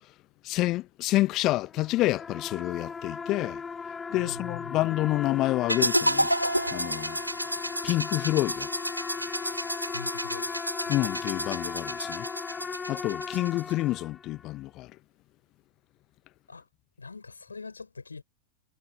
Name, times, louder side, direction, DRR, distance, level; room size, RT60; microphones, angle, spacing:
voice 1, 0.4-3.6 4.1-6.3 6.7-7.2 7.8-8.7 10.9-12.3 12.9-14.9, left 17 dB, 35° left, 0.9 m, -28 dB
sound 1, 1.7-14.4, left 5 dB, 15° left, 1.3 m, -37 dB
voice 2, 4.1-4.8 9.9-10.6 10.8-11.1 16.5-16.7 17.0-18.2, left 4 dB, 75° left, 5.5 m, -43 dB
sound 2, 5.7-13.7, equal, 90° right, 2.4 m, -31 dB
figure-of-eight pair, 90°, 0 cm